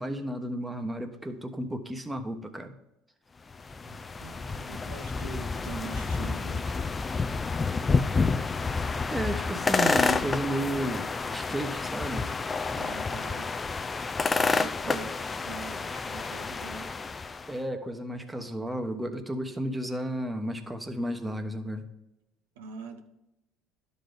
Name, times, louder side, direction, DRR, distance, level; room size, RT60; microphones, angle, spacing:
voice 1, 0.0-2.7 3.8-3.9 9.1-12.3 14.8-15.0 17.5-21.8, right 1 dB, 10° right, 6 dB, 1.1 m, -33 dB
sound 1, 3.5-17.5, left 4 dB, 25° left, 0.4 m, -29 dB
voice 2, 4.2-6.8 12.7-13.5 14.4-16.9 22.6-23.0, right 4 dB, 85° right, 5 dB, 0.9 m, -43 dB
11.5 x 4.1 x 5.1 m, 0.91 s
hypercardioid pair, 80°, 0 cm